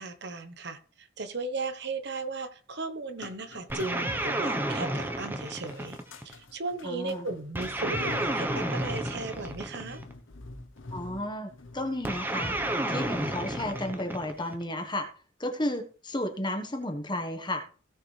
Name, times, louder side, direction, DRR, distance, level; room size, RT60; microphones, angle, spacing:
voice 1, 0.0-6.0 6.2-10.0, right 3 dB, 55° right, 9 dB, 1.1 m, -36 dB
sound 1, 3.2-4.7 5.0-14.0 14.3-14.5, left 2 dB, 70° left, 0.9 m, -45 dB
sound 2, 3.7-6.3 7.5-10.1 12.0-14.6, right 1 dB, 10° right, 1.0 m, -31 dB
voice 2, 6.8-7.3 10.9-12.6 12.9-15.1 15.4-17.6, left 1 dB, 20° left, 5 dB, 1.3 m, -33 dB
16.5 x 6.7 x 3.4 m, 0.41 s
head